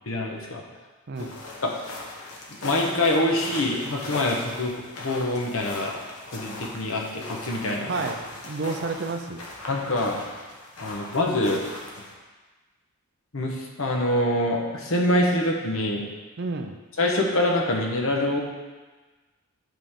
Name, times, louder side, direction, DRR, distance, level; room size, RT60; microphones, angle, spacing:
voice 1, 0.1-0.6 1.6-1.7 2.6-5.9 6.3-7.9 9.7-10.2 10.8-11.6 13.3-16.0 17.0-18.4, left 1 dB, 60° left, 0 dB, 1.1 m, -25 dB
sound 1, 1.1-12.1, left 2 dB, 85° left, 1.3 m, -39 dB
voice 2, 7.9-9.4 16.4-16.8, right 3 dB, 50° right, 6 dB, 0.5 m, -30 dB
9.2 x 5.0 x 3.7 m, 1.3 s
head